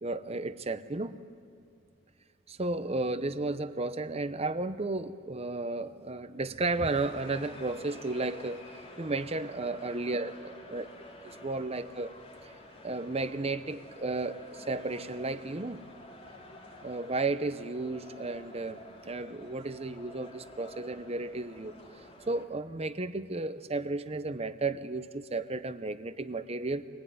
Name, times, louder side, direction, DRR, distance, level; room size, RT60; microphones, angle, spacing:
voice 1, 0.0-1.2 2.5-8.6 9.0-10.9 11.4-12.1 12.8-15.8 16.8-21.7 22.3-26.9, right 2 dB, 30° right, 12 dB, 0.8 m, -33 dB
sound 1, 6.8-22.4, left 1 dB, 30° left, 2.6 m, -50 dB
23.0 x 19.5 x 9.5 m, 2.4 s
head